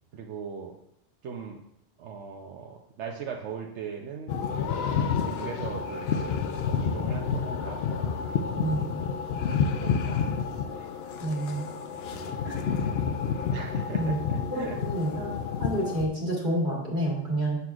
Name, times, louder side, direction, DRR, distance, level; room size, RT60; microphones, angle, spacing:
voice 1, 0.1-0.8 1.2-1.6 2.0-4.4 5.2-6.4 6.8-7.8 8.5-9.0 9.8-10.2 10.7-10.9 11.5-11.8 12.1-12.7 12.9-13.0 13.5-14.8, right 6 dB, 80° right, 1 dB, 0.9 m, -39 dB
sound 1, 4.3-16.1, left 6 dB, 70° left, 0.8 m, -29 dB
voice 2, 8.5-8.9 11.2-11.7 12.4-12.6 14.0-15.3 15.6-17.6, right 1 dB, 45° right, -2 dB, 1.8 m, -29 dB
7.6 x 6.8 x 2.4 m, 0.77 s
omnidirectional pair, 1.2 m